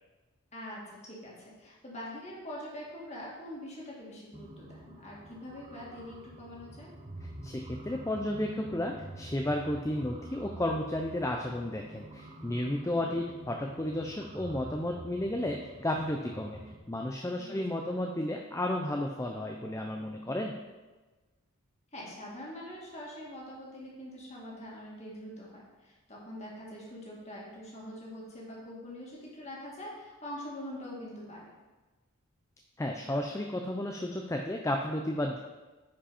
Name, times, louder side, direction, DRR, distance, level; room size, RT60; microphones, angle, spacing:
voice 1, 0.5-6.9 12.9-13.2 17.4-18.1 21.9-31.4, left 1 dB, 30° left, -4 dB, 2.1 m, -44 dB
sound 1, 4.3-16.8, right 1 dB, 25° right, 0.7 m, -47 dB
voice 2, 7.2-16.6 16.9-20.5 32.8-35.4, left 1 dB, 15° left, 2 dB, 0.4 m, -33 dB
10.0 x 5.1 x 4.3 m, 1.2 s
head